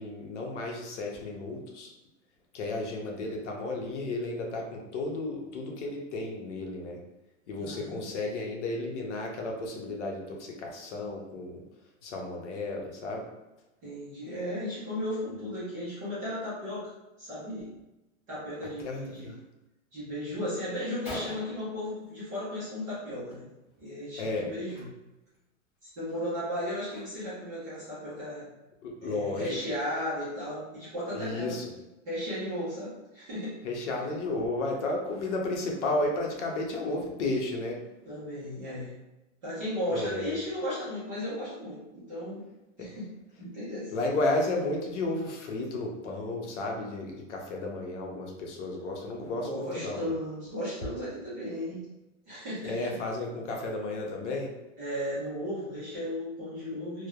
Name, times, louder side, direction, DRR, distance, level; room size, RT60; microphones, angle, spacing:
voice 1, 0.0-1.9 2.5-7.0 7.5-11.6 12.0-13.3 18.8-19.4 24.2-24.5 28.8-29.6 31.1-31.7 33.6-37.9 39.9-40.3 42.8-42.9 43.9-50.1 52.6-54.5, left 2 dB, 65° left, 0 dB, 0.8 m, -33 dB
voice 2, 7.6-8.1 13.8-16.9 17.2-17.7 18.3-19.3 19.9-23.4 23.8-24.9 26.0-28.5 29.0-31.6 32.1-33.5 34.0-34.1 38.1-38.9 39.4-42.4 42.8-43.1 43.4-43.9 49.3-51.9 52.3-53.0 54.8-57.1, equal, 15° right, -11 dB, 0.4 m, -35 dB
Gunshot gunfire, 20.4-20.5 20.8-20.9 21.1-22.7 23.0-23.3 23.6-23.8 24.6-24.8 25.3-25.4 25.9-27.5, left 1 dB, 20° left, 0.7 m, -44 dB
3.1 x 2.1 x 2.3 m, 0.97 s
supercardioid pair, 170°, 39 cm